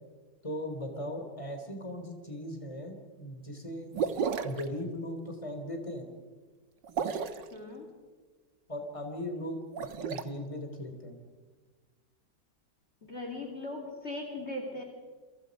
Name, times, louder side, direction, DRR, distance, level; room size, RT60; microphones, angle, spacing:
voice 1, 0.4-4.0 4.4-6.0 8.7-9.6 10.0-11.2, left 1 dB, 15° left, 4 dB, 3.5 m, -38 dB
sound 1, 3.9-4.7 6.8-7.5 9.6-10.2, right 6 dB, 85° right, 1.9 m, -32 dB
voice 2, 7.5-7.8 13.0-14.8, left 2 dB, 35° left, 2 dB, 3.1 m, -39 dB
28.5 x 24.5 x 5.3 m, 1.4 s
omnidirectional pair, 1.9 m